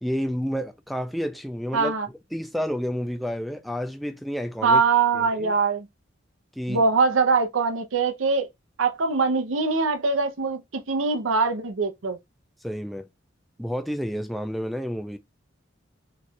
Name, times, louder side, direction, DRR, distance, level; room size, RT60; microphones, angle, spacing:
voice 1, 0.0-1.9 2.3-4.8 5.1-5.5 6.6-6.8 12.6-13.1 13.6-15.2, equal, ahead, 0.3 m, -30 dB
voice 2, 1.7-2.1 4.6-5.9 6.7-8.5 8.8-12.2, right 4 dB, 85° right, 0.7 m, -22 dB
3.2 x 2.3 x 4.2 m
head